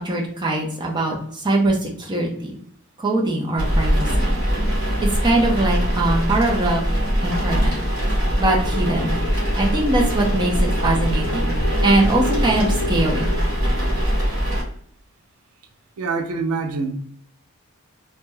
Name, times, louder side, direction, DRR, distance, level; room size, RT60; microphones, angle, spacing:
voice 1, 0.0-2.6 3.0-4.2 5.0-6.8 7.2-7.7 8.4-9.1 9.6-11.6 11.8-13.3, right 2 dB, 20° right, 0.6 m, -22 dB
sound 1, 3.6-14.6, equal, 45° right, 1.3 m, -22 dB
sound 2, 8.4-14.2, left 1 dB, 45° left, 0.6 m, -32 dB
voice 2, 16.0-16.9, right 4 dB, 85° right, 0.4 m, -25 dB
2.7 x 2.2 x 3.2 m
head